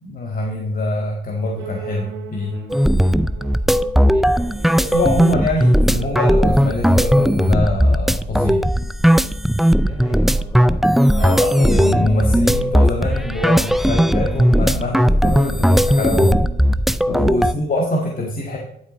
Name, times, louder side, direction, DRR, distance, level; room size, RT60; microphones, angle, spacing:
voice 1, 0.0-2.5 4.8-8.7 11.2-16.4 17.1-18.6, left 2 dB, 45° left, 0 dB, 1.9 m, -24 dB
sound 1, 1.6-7.5, right 8 dB, 85° right, 1.9 m, -40 dB
sound 2, 2.7-17.5, equal, ahead, 0.4 m, -17 dB
voice 2, 4.0-4.9 9.7-11.3 17.0-17.3, left 1 dB, 20° left, 0 dB, 3.6 m, -37 dB
12.5 x 7.8 x 4.1 m, 0.74 s
cardioid pair, 90°, 20 cm